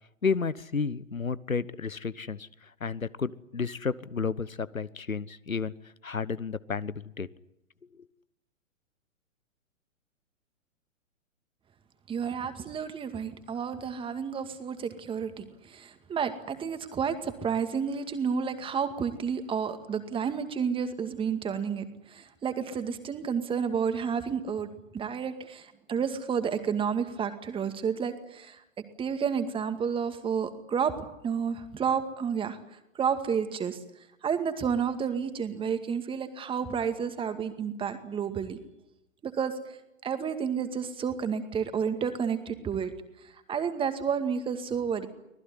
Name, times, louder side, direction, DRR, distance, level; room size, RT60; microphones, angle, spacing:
voice 1, 0.2-5.7 6.0-7.3 8.0-8.1, left 5 dB, 85° left, 18 dB, 1.2 m, -32 dB
voice 2, 12.1-24.7 24.9-30.9 31.2-32.6 33.0-33.8 34.2-38.6 39.2-39.8 40.0-42.9 43.5-45.1, right 7 dB, 15° right, 9 dB, 2.1 m, -31 dB
25.0 x 19.0 x 9.9 m, 0.88 s
figure-of-eight pair, 120°, 40 cm